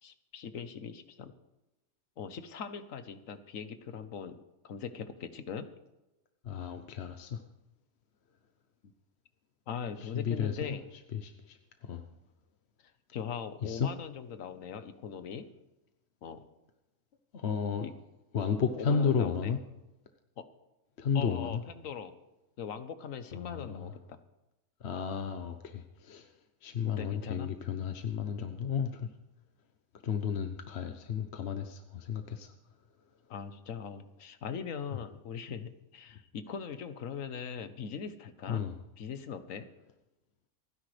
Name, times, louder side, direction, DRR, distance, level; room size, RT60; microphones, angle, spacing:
voice 1, 0.0-1.3 2.2-4.4 4.6-5.7 9.7-10.8 13.1-15.5 16.2-16.5 17.8-17.9 18.7-19.5 20.4-20.5 21.1-22.1 22.6-24.2 26.8-27.5 33.3-38.6 39.0-39.7, left 7 dB, 70° left, 10 dB, 1.4 m, -40 dB
voice 2, 6.4-7.4 10.0-10.8 11.1-11.6 11.8-12.0 13.6-13.9 17.3-17.9 18.3-19.6 21.0-21.6 23.3-23.9 24.8-26.3 26.6-29.1 30.0-32.5 38.5-38.8, left 6 dB, 55° left, 6 dB, 1.1 m, -33 dB
28.0 x 10.0 x 3.3 m, 0.98 s
omnidirectional pair, 1.4 m